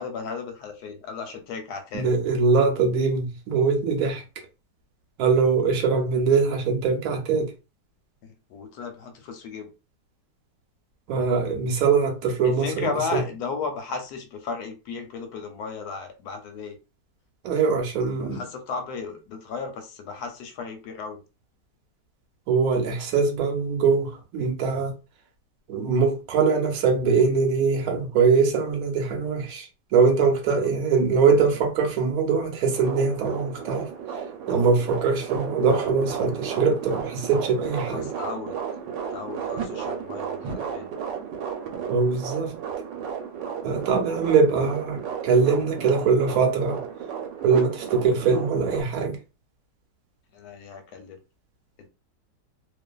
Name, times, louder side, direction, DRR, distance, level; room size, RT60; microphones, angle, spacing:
voice 1, 0.0-2.1 8.5-9.7 12.4-16.8 18.2-21.2 30.6-30.7 37.7-38.6 39.1-40.9 50.3-51.2, left 5 dB, 75° left, 1.0 m, -34 dB
voice 2, 1.9-4.2 5.2-7.5 11.1-13.2 17.4-18.4 22.5-24.9 25.7-33.9 34.5-38.1 41.9-42.6 43.6-46.8 47.4-49.2, right 5 dB, 65° right, 1.0 m, -22 dB
sound 1, 32.7-48.8, right 7 dB, 90° right, 1.2 m, -34 dB
2.5 x 2.4 x 2.2 m
omnidirectional pair, 1.9 m